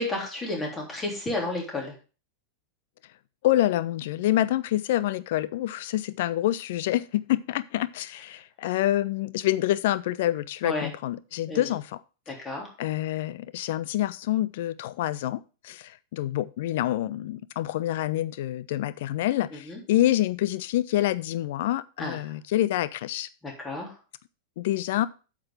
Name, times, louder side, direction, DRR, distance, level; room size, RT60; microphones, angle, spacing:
voice 1, 0.0-1.9 10.6-10.9 11.5-11.7 12.3-12.7 19.5-19.8 22.0-22.2 23.4-24.0, left 2 dB, 15° left, 3.4 m, -32 dB
voice 2, 3.4-12.0 12.8-23.3 24.6-25.1, left 14 dB, 55° left, 0.4 m, -27 dB
8.7 x 6.1 x 4.9 m
figure-of-eight pair, 90°, 0 cm